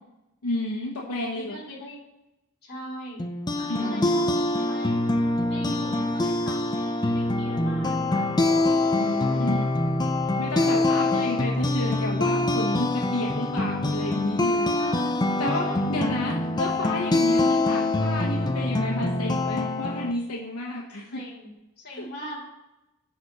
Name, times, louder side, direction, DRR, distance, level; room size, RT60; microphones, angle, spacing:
voice 1, 0.4-1.5 3.7-4.1 9.0-9.7 10.4-14.7 15.4-21.2 21.9-22.1, left 1 dB, 85° left, -2 dB, 1.2 m, -31 dB
voice 2, 1.3-2.0 2.6-3.2 3.5-4.3 4.7-5.0 5.5-9.5 10.4-10.8 14.7-16.6 21.1-22.5, equal, 45° left, -4 dB, 2.8 m, -41 dB
sound 1, 3.2-20.1, left 2 dB, 20° left, 0.5 m, -25 dB
9.5 x 4.3 x 5.4 m, 0.94 s
head